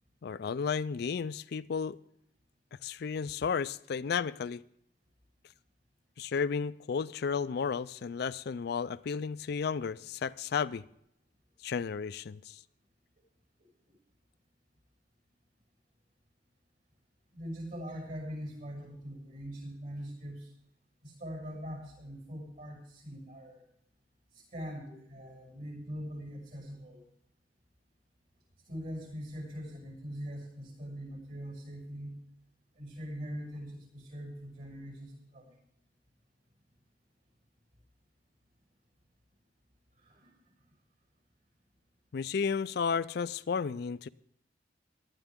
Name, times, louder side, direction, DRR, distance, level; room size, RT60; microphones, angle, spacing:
voice 1, 0.2-2.0 2.8-4.6 6.2-10.8 11.6-12.6 42.1-44.1, left 6 dB, 60° left, 0.4 m, -33 dB
voice 2, 17.3-20.5 21.0-23.6 24.3-27.0 28.7-32.2 32.8-35.5 40.0-40.3, equal, 55° right, 6.3 m, -42 dB
18.5 x 12.0 x 3.6 m
head